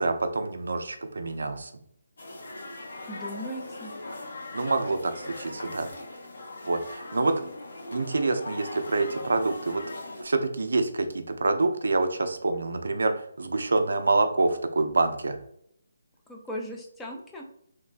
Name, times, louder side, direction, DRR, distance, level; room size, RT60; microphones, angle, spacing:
voice 1, 0.0-1.7 4.5-5.9 6.7-7.3 7.9-9.8 10.2-15.4, right 3 dB, 70° right, 8 dB, 0.3 m, -26 dB
sound 1, 2.2-10.2, left 2 dB, 60° left, 0.7 m, -40 dB
voice 2, 3.1-3.9 16.3-17.5, equal, 5° left, -1 dB, 0.3 m, -37 dB
3.0 x 2.1 x 2.4 m, 0.71 s
figure-of-eight pair, 150°, 0 cm